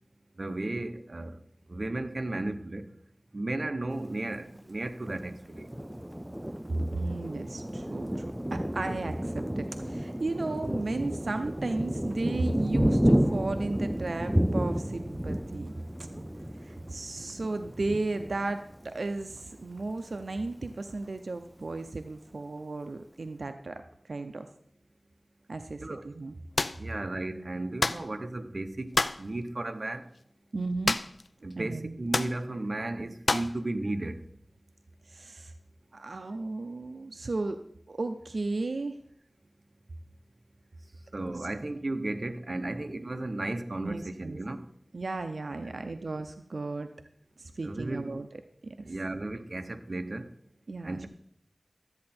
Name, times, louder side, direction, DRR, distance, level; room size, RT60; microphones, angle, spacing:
voice 1, 0.4-1.4 1.7-2.9 3.3-5.7 25.8-26.1 26.8-30.1 31.4-34.3 41.1-44.6 45.6-45.9 47.6-48.2 48.8-50.3 50.8-51.1, right 2 dB, 55° right, 8 dB, 0.8 m, -34 dB
Thunder, 5.0-19.4 19.9-20.0 20.3-20.9, equal, 10° right, 0.4 m, -31 dB
voice 2, 6.9-8.2 8.5-15.7 16.6-23.8 24.1-24.5 25.5-26.3 30.5-31.0 31.4-32.0 35.1-35.5 35.9-37.6 37.9-39.0 41.4-41.5 43.8-44.4 44.9-46.9 47.4-48.3 48.6-48.9 50.7-51.1, right 3 dB, 90° right, 8 dB, 0.5 m, -34 dB
sound 1, 26.6-26.8 27.8-28.1 28.9-29.2 30.8-31.3 31.5-31.6 32.1-32.4 33.3-33.6, left 3 dB, 75° left, 0.4 m, -28 dB
12.5 x 8.6 x 4.3 m, 0.68 s
wide cardioid pair, 50°, 0 cm